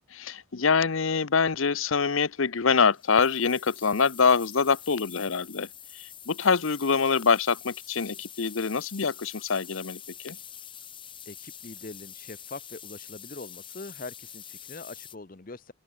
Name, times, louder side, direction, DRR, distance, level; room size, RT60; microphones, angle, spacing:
voice 1, 0.1-5.7 5.9-10.0 10.2-10.4, left 5 dB, 75° left, 0.8 m, -25 dB
sound 1, 2.7-15.1, left 9 dB, 25° left, 7.2 m, -45 dB
voice 2, 11.3-15.7, left 3 dB, 40° left, 0.8 m, -43 dB
open air
head